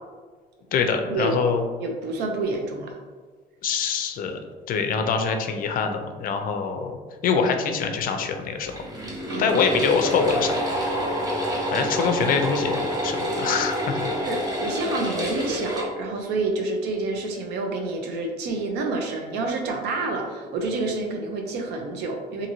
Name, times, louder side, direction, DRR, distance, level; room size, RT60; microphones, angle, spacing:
voice 1, 0.7-1.6 3.6-4.4 4.7-6.9 7.2-8.8 9.4-10.5 11.7-14.1, left 5 dB, 55° left, 6 dB, 0.4 m, -24 dB
voice 2, 1.8-2.9 9.3-9.6 11.7-11.9 14.2-22.5, right 3 dB, 80° right, 2 dB, 0.5 m, -28 dB
sound 1, 8.7-15.8, equal, 20° right, 0.8 m, -27 dB
2.6 x 2.6 x 2.9 m, 1.4 s
cardioid pair, 110°, 17 cm